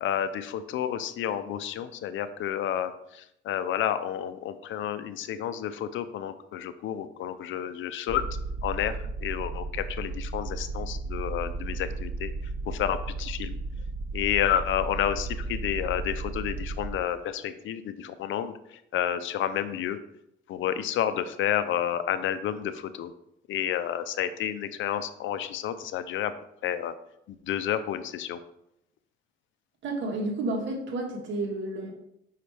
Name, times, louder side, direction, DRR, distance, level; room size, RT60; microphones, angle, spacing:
voice 1, 0.0-8.2 8.6-12.3 12.7-13.6 14.1-20.0 20.5-23.1 23.5-26.3 26.6-26.9 27.3-28.4, left 10 dB, 75° left, 12 dB, 0.6 m, -30 dB
sound 1, 8.1-16.9, right 3 dB, 35° right, 0.9 m, -34 dB
voice 2, 29.8-31.9, right 2 dB, 70° right, 1 dB, 1.6 m, -31 dB
5.7 x 5.5 x 3.4 m, 0.79 s
cardioid pair, 90°, 20 cm